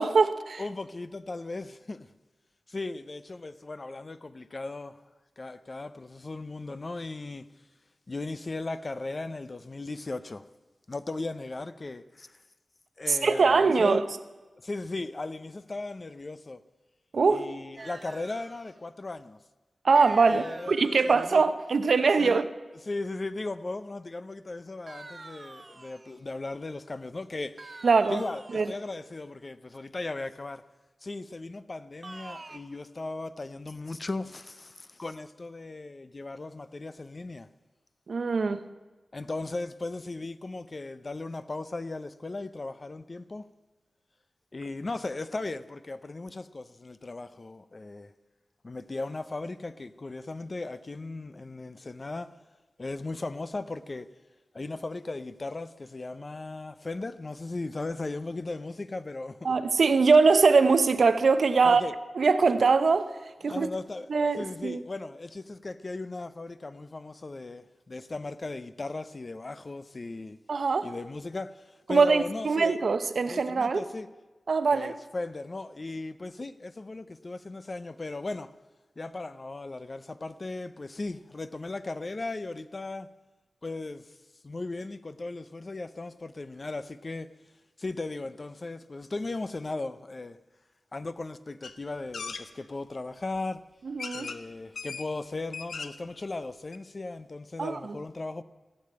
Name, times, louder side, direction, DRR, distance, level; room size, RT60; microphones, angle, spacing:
voice 1, 0.0-0.6 13.1-14.0 17.1-17.5 19.8-22.5 27.8-28.2 28.5-28.7 38.1-38.6 59.4-61.8 62.1-63.1 63.4-63.7 64.1-64.8 70.5-70.9 71.9-73.8 74.5-74.9 93.8-94.3 97.6-98.0, right 4 dB, 70° right, 0.8 m, -22 dB
voice 2, 0.6-2.1 2.7-5.0 5.4-7.5 8.1-10.4 10.9-12.4 13.0-14.0 14.6-16.6 17.3-19.4 20.2-20.8 21.1-21.4 22.2-22.4 22.9-27.8 28.1-30.6 31.0-37.5 39.1-43.4 44.5-48.1 48.6-52.3 52.8-54.1 54.5-59.5 61.6-61.9 63.4-70.4 70.8-72.8 73.3-74.1 74.7-78.5 79.0-83.1 83.6-84.2 84.4-87.3 87.8-90.4 90.9-93.6 94.1-98.4, left 2 dB, 40° left, 0.6 m, -37 dB
sound 1, 17.8-18.8 20.0-21.3 24.9-26.2 27.6-28.9 32.0-32.6, right 3 dB, 40° right, 0.9 m, -46 dB
sound 2, 91.6-91.7 92.1-92.4 93.4-93.5 94.0-94.4 94.8-95.1 95.4-96.1 96.4-96.5 96.7-96.8, left 5 dB, 85° left, 0.8 m, -38 dB
15.5 x 7.6 x 8.8 m
wide cardioid pair, 70°, 0 cm